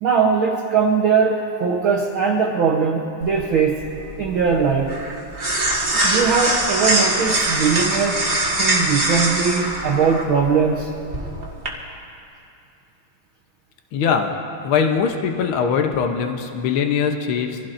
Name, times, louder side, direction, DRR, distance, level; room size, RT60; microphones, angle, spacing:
voice 1, 0.0-3.9 4.2-5.0 6.0-8.3 8.6-10.9, right 5 dB, 70° right, -1 dB, 1.2 m, -20 dB
sound 1, 3.2-11.7, right 1 dB, 30° right, 1.1 m, -23 dB
voice 2, 13.9-14.3 14.6-17.6, left 6 dB, 85° left, 4 dB, 1.1 m, -21 dB
25.5 x 15.5 x 2.6 m, 2.6 s
omnidirectional pair, 3.5 m